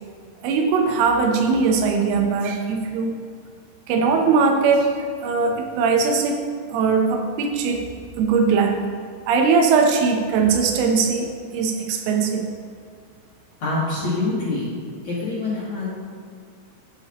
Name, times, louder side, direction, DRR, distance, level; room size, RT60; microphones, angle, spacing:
voice 1, 0.4-3.1 3.9-5.0 5.2-7.9 8.2-8.8 9.3-12.5, right 5 dB, 85° right, 3 dB, 3.4 m, -20 dB
voice 2, 13.6-14.7 15.0-15.9, left 2 dB, 55° left, -8 dB, 2.2 m, -25 dB
15.0 x 6.5 x 3.0 m, 2.1 s
omnidirectional pair, 5.6 m